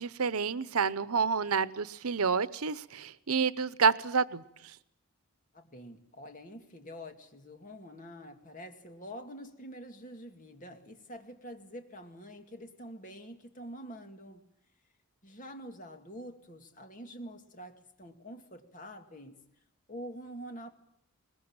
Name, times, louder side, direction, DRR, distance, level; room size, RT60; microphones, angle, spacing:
voice 1, 0.0-4.4, right 5 dB, 85° right, 0.9 m, -29 dB
voice 2, 5.5-14.4 15.2-19.4 19.9-20.7, equal, 35° left, 2.2 m, -46 dB
22.0 x 20.0 x 8.8 m
head